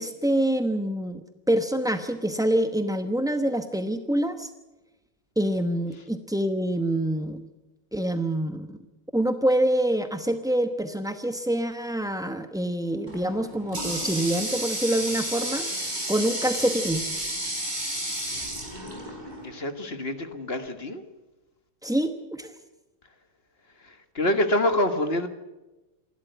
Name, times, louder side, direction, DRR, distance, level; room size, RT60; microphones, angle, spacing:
voice 1, 0.0-4.5 5.4-7.4 7.9-8.8 9.1-15.7 16.1-17.0 21.8-22.5, right 1 dB, 5° right, 7 dB, 0.4 m, -26 dB
Water tap faucet, 13.1-19.6, right 1 dB, 20° right, 5.2 m, -32 dB
voice 2, 19.4-21.0 24.1-25.3, left 1 dB, 35° left, 8 dB, 1.6 m, -26 dB
27.5 x 12.5 x 9.2 m, 1.0 s
omnidirectional pair, 2.0 m